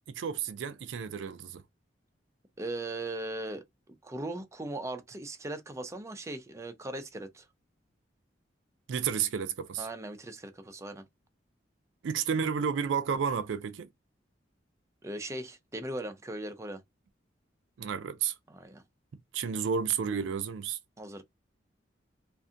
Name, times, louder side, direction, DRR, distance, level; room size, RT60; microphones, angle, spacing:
voice 1, 0.1-1.6 8.9-9.9 12.0-13.9 17.8-18.3 19.3-20.8, right 7 dB, 85° right, 0.4 m, -31 dB
voice 2, 2.6-7.5 9.8-11.1 15.0-16.8 18.5-18.8 21.0-21.2, right 1 dB, 15° right, 0.5 m, -39 dB
2.6 x 2.5 x 2.4 m
head